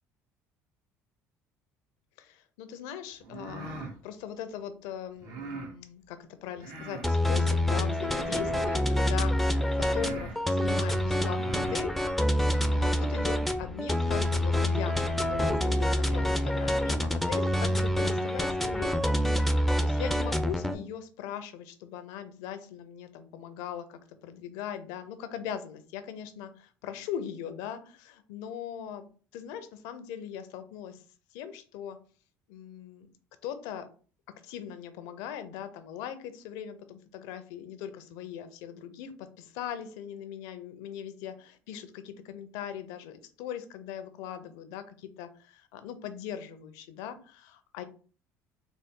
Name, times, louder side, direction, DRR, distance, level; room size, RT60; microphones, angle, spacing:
voice 1, 2.2-12.3 12.7-19.1 19.4-29.1 29.3-31.0 31.3-32.0 32.5-33.1 33.4-33.9 34.4-47.8, left 9 dB, 80° left, 10 dB, 0.5 m, -40 dB
sound 1, 3.2-4.0 5.2-5.7 6.6-7.1 8.1-8.7 9.4-9.5 9.8-10.4 11.2-11.8, right 3 dB, 65° right, 0.9 m, -41 dB
sound 2, 7.0-20.7, left 1 dB, 5° left, 0.4 m, -27 dB
4.0 x 2.0 x 3.6 m, 0.40 s
supercardioid pair, 85°, 7 cm